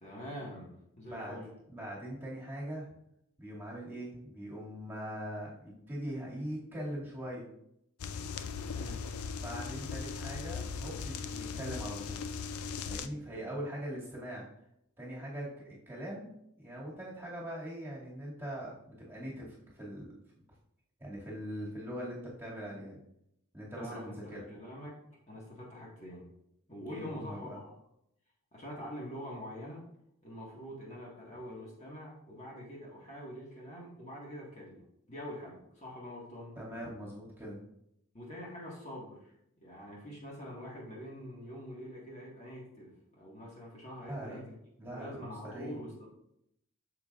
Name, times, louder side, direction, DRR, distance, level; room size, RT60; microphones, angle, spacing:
voice 1, 0.0-1.5 8.5-9.0 13.3-13.5 23.8-25.0 25.3-26.2 26.7-27.7 28.5-29.8 30.2-34.8 35.1-36.6 38.1-39.3 39.6-44.6 44.9-46.1, equal, 30° left, -4 dB, 1.7 m, -45 dB
voice 2, 1.0-1.4 1.7-2.9 3.4-7.5 9.4-12.2 12.8-14.5 15.0-16.3 16.6-20.1 21.0-23.0 23.5-24.4 26.9-27.6 36.6-37.6 44.1-44.4 44.8-45.8, equal, 10° right, -6 dB, 2.3 m, -41 dB
sound 1, 8.0-13.1, left 5 dB, 90° left, 0.5 m, -38 dB
8.4 x 7.0 x 2.5 m, 0.77 s
head